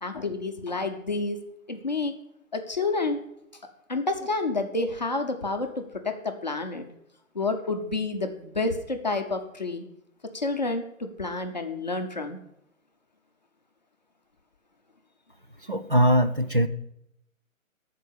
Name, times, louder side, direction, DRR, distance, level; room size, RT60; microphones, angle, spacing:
voice 1, 0.0-1.4 1.7-2.1 2.5-3.2 3.9-6.9 7.3-9.8 10.3-12.4, left 3 dB, 30° left, 5 dB, 0.7 m, -29 dB
voice 2, 15.6-16.7, equal, 40° right, 10 dB, 0.4 m, -21 dB
12.0 x 4.7 x 7.2 m, 0.80 s
hypercardioid pair, 175°, 41 cm